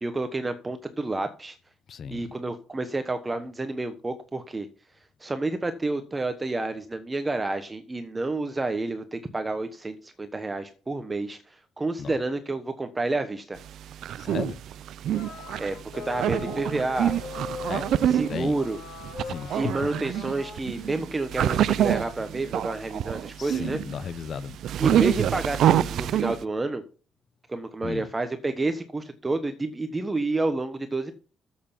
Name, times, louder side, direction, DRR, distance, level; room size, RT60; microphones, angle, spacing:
voice 1, 0.0-1.6 2.1-4.7 5.2-13.6 15.6-17.2 18.1-18.8 19.5-23.8 24.8-26.8 27.5-31.1, right 2 dB, 20° right, 1.1 m, -29 dB
voice 2, 1.9-2.3 12.0-12.1 14.2-14.6 17.7-17.9 18.3-18.6 19.3-19.7 23.4-24.6 27.8-28.0, left 7 dB, 55° left, 0.8 m, -34 dB
sound 1, 13.6-26.4, right 11 dB, 75° right, 0.4 m, -27 dB
sound 2, 15.1-20.6, left 5 dB, 80° left, 3.6 m, -40 dB
8.5 x 7.8 x 7.2 m
cardioid pair, 90°, 0 cm